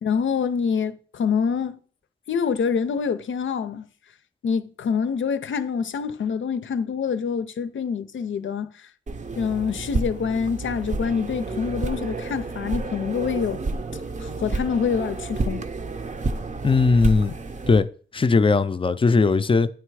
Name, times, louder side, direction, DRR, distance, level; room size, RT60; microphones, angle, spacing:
voice 1, 0.0-1.8 2.3-3.9 4.4-8.7 9.4-13.6 14.2-15.6, left 6 dB, 75° left, 0.5 m, -26 dB
sound 1, 9.1-17.8, right 3 dB, 40° right, 0.6 m, -30 dB
voice 2, 16.6-17.3 17.7-17.9 18.1-19.7, left 4 dB, 25° left, 0.4 m, -18 dB
9.1 x 3.3 x 4.7 m
wide cardioid pair, 100°, 20 cm